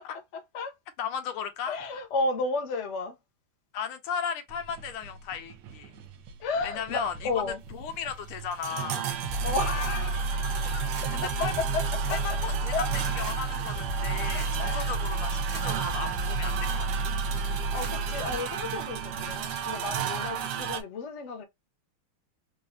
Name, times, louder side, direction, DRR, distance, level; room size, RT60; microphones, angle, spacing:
voice 1, 1.0-1.8 3.7-6.0 6.6-9.1 11.1-11.5 12.1-16.9 20.3-20.5, left 7 dB, 85° left, 1.7 m, -35 dB
voice 2, 1.7-3.1 6.4-7.6 9.4-10.9 11.6-11.8 12.1-12.2 12.7-12.9 14.6-14.9 17.4-21.4, left 3 dB, 50° left, 0.9 m, -32 dB
sound 1, 4.5-20.0, right 3 dB, 85° right, 1.7 m, -47 dB
sound 2, 7.6-20.8, right 9 dB, 65° right, 1.1 m, -34 dB
sound 3, 9.2-18.4, right 2 dB, 50° right, 1.5 m, -31 dB
4.7 x 2.5 x 2.4 m
omnidirectional pair, 2.3 m